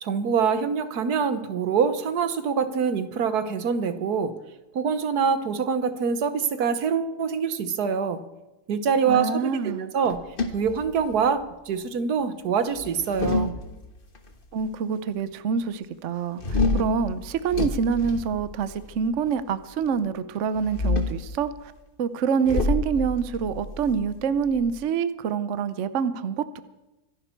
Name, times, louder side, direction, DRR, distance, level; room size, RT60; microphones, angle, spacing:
voice 1, 0.0-4.4 4.7-8.2 8.7-10.2 10.5-13.5, right 6 dB, 80° right, 11 dB, 1.6 m, -25 dB
voice 2, 9.1-9.9 14.5-21.7 22.0-26.6, right 6 dB, 60° right, 13 dB, 0.9 m, -26 dB
sound 1, 10.0-11.4 12.7-14.2 16.4-19.0 20.5-21.3 22.5-24.8, left 3 dB, 35° left, 1.5 m, -28 dB
25.0 x 11.0 x 4.5 m, 1.0 s
omnidirectional pair, 1.6 m